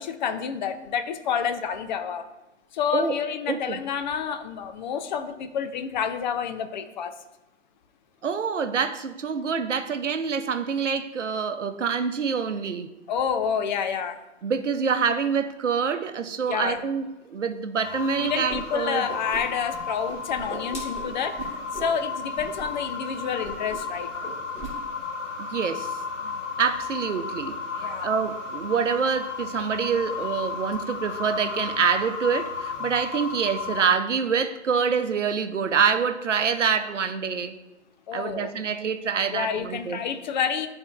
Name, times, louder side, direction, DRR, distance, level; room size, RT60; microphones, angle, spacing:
voice 1, 0.0-2.3 2.7-7.1 13.1-14.2 16.5-16.8 18.2-21.4 21.7-24.1 26.2-26.4 27.8-28.1 38.1-38.5 39.3-40.7, left 7 dB, 40° left, 0.6 m, -29 dB
voice 2, 3.5-3.8 8.2-12.9 14.4-19.1 25.4-26.0 26.6-37.6 38.1-40.0, right 6 dB, 80° right, 0.7 m, -26 dB
sound 1, 17.8-33.8, left 4 dB, 80° left, 1.3 m, -33 dB
Whoosh swoosh swish, 18.5-18.6 18.9-19.8 20.0-21.9 22.3-22.7 22.9-23.1 23.4-23.9 24.2-24.7, right 1 dB, 15° left, 1.7 m, -38 dB
11.5 x 4.3 x 2.5 m
figure-of-eight pair, 115°, 36 cm